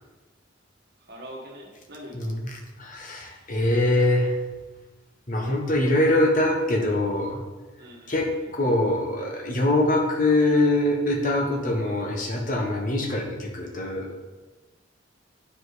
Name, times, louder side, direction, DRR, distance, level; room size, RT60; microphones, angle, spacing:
voice 1, 1.0-2.5 7.8-8.5, equal, 55° right, -1 dB, 1.6 m, -44 dB
voice 2, 2.1-4.4 5.3-7.4 8.1-14.2, left 1 dB, 45° left, 1 dB, 1.3 m, -23 dB
8.9 x 5.1 x 4.1 m, 1.2 s
head